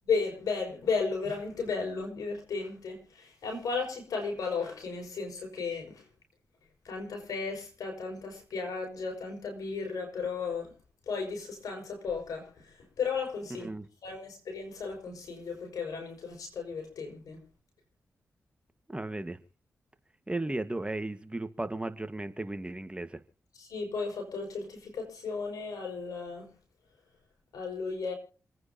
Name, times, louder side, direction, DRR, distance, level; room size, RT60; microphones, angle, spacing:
voice 1, 0.0-6.0 6.8-10.7 11.1-13.7 14.0-17.4 23.6-26.5 27.5-28.1, left 4 dB, 85° left, 5.9 m, -34 dB
voice 2, 18.9-19.4 20.3-23.2, right 2 dB, 20° right, 1.6 m, -35 dB
27.5 x 9.6 x 2.9 m
cardioid pair, 50°, 6 cm